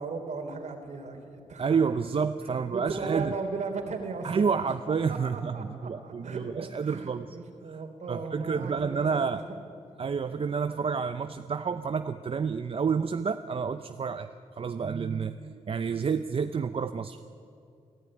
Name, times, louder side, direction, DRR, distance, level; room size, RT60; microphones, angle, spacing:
voice 1, 0.0-1.8 2.4-4.6 4.9-9.4, right 4 dB, 70° right, 5 dB, 3.5 m, -37 dB
voice 2, 1.6-3.3 4.2-7.4 7.7-7.8 8.1-9.4 10.0-14.3 14.6-17.2, right 6 dB, 50° right, 9 dB, 0.7 m, -29 dB
28.0 x 15.5 x 9.9 m, 2.6 s
cardioid pair, 90°, 12 cm